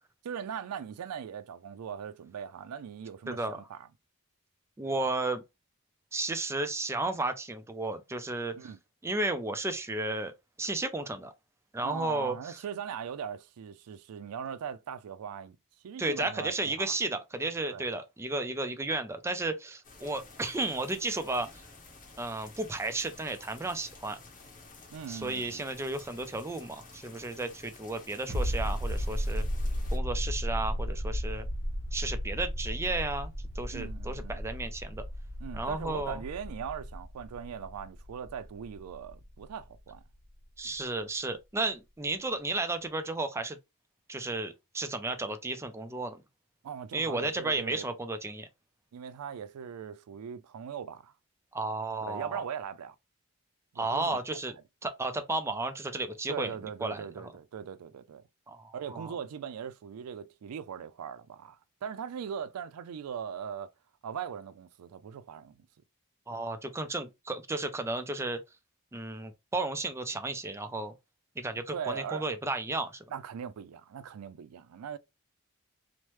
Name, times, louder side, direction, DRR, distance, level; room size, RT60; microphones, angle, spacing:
voice 1, 0.2-3.9 8.6-8.8 11.8-15.6 15.8-16.9 17.7-17.9 24.9-25.6 33.7-34.4 35.4-40.0 40.6-40.8 46.6-47.9 48.9-51.1 52.1-53.0 53.7-54.4 56.3-58.2 58.7-63.7 64.0-65.7 66.3-66.4 71.7-72.3 73.1-75.0, right 7 dB, 85° right, 0.4 m, -40 dB
voice 2, 3.3-3.6 4.8-5.4 6.1-8.7 9.0-10.3 10.6-11.3 11.7-12.6 16.0-21.6 22.2-24.2 25.1-29.5 29.9-31.5 31.9-35.0 35.5-36.2 40.6-43.6 44.1-46.2 46.9-48.5 51.5-52.4 53.8-54.5 54.8-56.5 56.8-57.3 58.5-59.1 66.3-68.4 68.9-70.9 71.4-73.0, right 2 dB, 10° right, 0.4 m, -33 dB
sound 1, 19.8-30.0, left 3 dB, 35° left, 0.8 m, -52 dB
sound 2, 28.3-39.6 39.9-40.0, equal, 45° right, 1.0 m, -34 dB
3.0 x 2.1 x 3.1 m
head